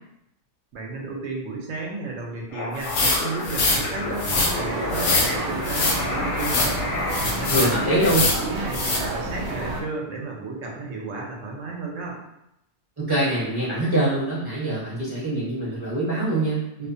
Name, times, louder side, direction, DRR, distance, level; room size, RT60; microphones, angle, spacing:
voice 1, 0.7-6.9 7.2-8.0 8.4-12.2, right 3 dB, 70° right, -1 dB, 0.9 m, -33 dB
sound 1, 2.5-8.1, left 2 dB, 65° left, 0.8 m, -31 dB
sound 2, 2.8-3.8 4.2-4.5 4.9-5.3 5.6-6.0 6.4-6.7 7.1-7.7 8.0-8.4 8.7-9.0, left 3 dB, 90° left, 1.1 m, -23 dB
sound 3, 3.6-9.8, right 1 dB, 85° right, 1.1 m, -30 dB
voice 2, 7.5-8.3 13.0-16.9, right 1 dB, 20° right, -10 dB, 0.7 m, -24 dB
2.7 x 2.1 x 2.5 m, 0.82 s
omnidirectional pair, 1.6 m